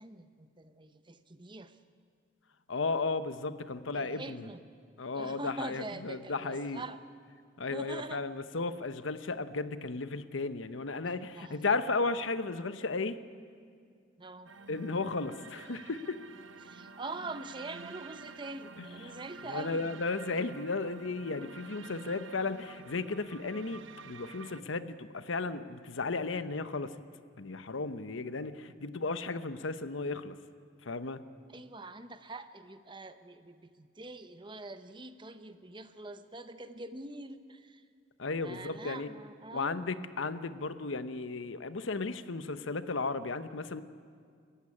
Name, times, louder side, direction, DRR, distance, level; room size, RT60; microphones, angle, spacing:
voice 1, 0.0-1.8 3.9-4.6 5.1-7.0 7.7-8.2 11.1-11.6 14.2-14.5 16.6-19.9 31.5-37.9 38.4-39.8, right 2 dB, 25° right, 10 dB, 0.9 m, -44 dB
voice 2, 2.7-4.5 5.0-6.8 7.6-13.2 14.7-16.2 19.5-26.9 27.4-30.4 30.8-31.2 38.2-39.1 39.5-43.8, left 3 dB, 75° left, 12 dB, 0.9 m, -34 dB
sound 1, 13.4-13.6 15.4-15.7 17.3-17.6 19.1-19.4 21.1-21.3 23.0-23.6 25.1-25.4 26.2-26.3, right 1 dB, 40° left, 5.9 m, -62 dB
sound 2, 14.5-24.6, right 4 dB, 75° right, 1.0 m, -49 dB
28.0 x 15.0 x 9.8 m, 2.2 s
head